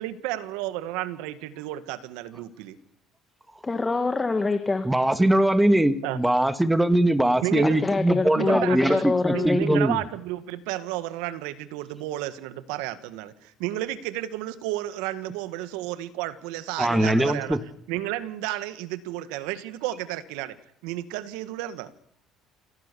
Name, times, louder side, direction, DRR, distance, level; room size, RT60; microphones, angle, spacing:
voice 1, 0.0-2.8 6.0-6.2 7.4-7.8 8.3-9.0 9.3-17.6 17.9-20.6 20.8-21.9, right 15 dB, 85° right, 13 dB, 1.7 m, -32 dB
voice 2, 3.6-4.9 7.6-9.8, left 3 dB, 20° left, 9 dB, 1.7 m, -25 dB
voice 3, 4.8-10.0 16.8-17.6, right 1 dB, 10° right, 11 dB, 1.9 m, -21 dB
27.0 x 17.0 x 7.0 m, 0.71 s
supercardioid pair, 90°, 0 cm